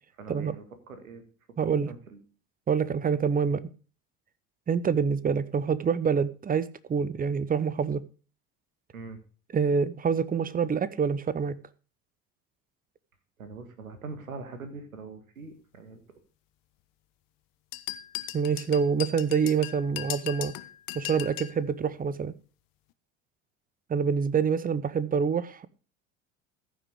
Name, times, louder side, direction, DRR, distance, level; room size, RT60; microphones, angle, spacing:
voice 1, 0.2-1.2 1.6-2.2 8.9-9.2 13.4-16.0, right 4 dB, 80° right, 1.8 m, -43 dB
voice 2, 1.6-1.9 2.7-3.6 4.7-8.0 9.5-11.6 18.3-20.5 20.9-22.3 23.9-25.7, right 6 dB, 20° right, 0.8 m, -26 dB
sound 1, 17.7-21.6, left 16 dB, 55° left, 0.9 m, -37 dB
14.5 x 6.3 x 4.9 m
figure-of-eight pair, 65°, 41 cm